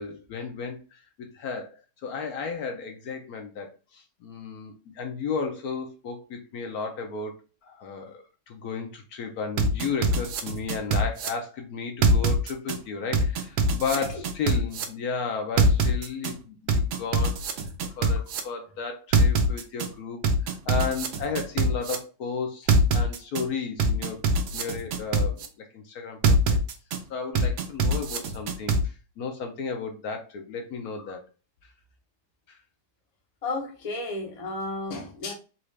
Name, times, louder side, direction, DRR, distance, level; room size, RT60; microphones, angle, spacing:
voice 1, 0.0-17.6 18.0-24.2 24.5-26.6 27.1-31.2 32.5-32.6, left 5 dB, 70° left, 4 dB, 1.1 m, -34 dB
sound 1, 9.6-11.3 12.0-12.8 13.1-14.8 15.6-16.3 16.7-18.4 19.1-19.9 20.2-22.0 22.7-23.4 23.8-25.5 26.2-27.0 27.3-28.8, right 3 dB, 75° right, 1.2 m, -23 dB
voice 2, 33.4-35.3, left 2 dB, 35° left, 1 dB, 0.7 m, -32 dB
4.0 x 2.4 x 3.2 m, 0.34 s
omnidirectional pair, 1.8 m